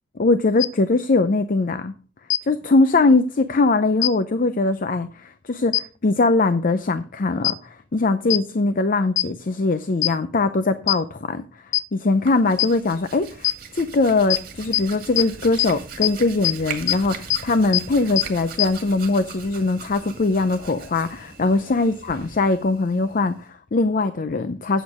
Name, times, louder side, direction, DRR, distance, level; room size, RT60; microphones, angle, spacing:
voice 1, 0.2-1.9 2.4-11.4 11.9-13.5 13.7-24.8, left 3 dB, 45° left, 0.6 m, -21 dB
sound 1, 0.6-0.7 2.3-2.4 4.0-4.1 5.7-5.8 7.4-7.5 8.3-8.4 9.2-9.3 10.0-10.1 10.9-11.0 11.7-11.8 12.6-12.7 13.4-13.5 14.3-14.4 14.7-14.8 15.2-15.3 15.6-15.7 16.0-16.1 16.4-16.5 16.9-17.0 17.3-17.4 17.7-17.8 18.2-18.3 18.6-18.7, left 15 dB, 75° left, 0.9 m, -19 dB
Hands, 12.1-23.5, right 5 dB, 50° right, 1.8 m, -39 dB
8.4 x 8.1 x 4.8 m
head